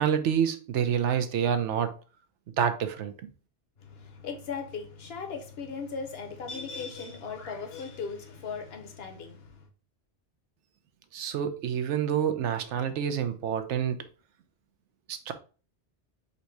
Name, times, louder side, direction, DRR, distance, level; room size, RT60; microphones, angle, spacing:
voice 1, 0.0-1.9 2.6-3.3 11.1-14.0 15.1-15.3, right 8 dB, 90° right, 1.0 m, -28 dB
voice 2, 3.8-9.7, left 5 dB, 65° left, 1.1 m, -38 dB
4.1 x 2.7 x 4.5 m
omnidirectional pair, 1.2 m